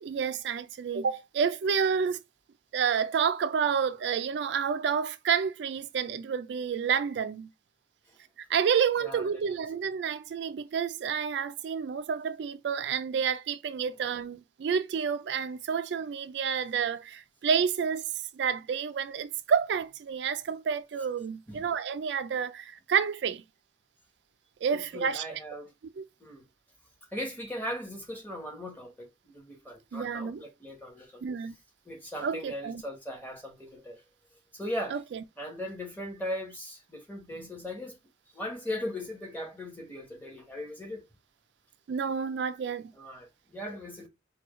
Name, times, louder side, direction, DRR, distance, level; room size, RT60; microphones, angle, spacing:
voice 1, 0.0-2.2 2.7-7.5 8.5-18.0 18.3-23.4 24.6-25.4 26.0-26.1 29.9-30.4 31.2-31.5 32.2-32.8 34.9-35.2 41.9-42.9, right 7 dB, 65° right, 0.3 m, -29 dB
voice 2, 9.0-9.6 21.5-21.7 24.7-25.7 26.2-26.4 27.1-31.2 31.8-34.0 34.5-35.0 35.4-38.0 38.3-41.1 42.9-44.1, left 1 dB, 10° left, 1.2 m, -38 dB
4.5 x 2.3 x 3.0 m
head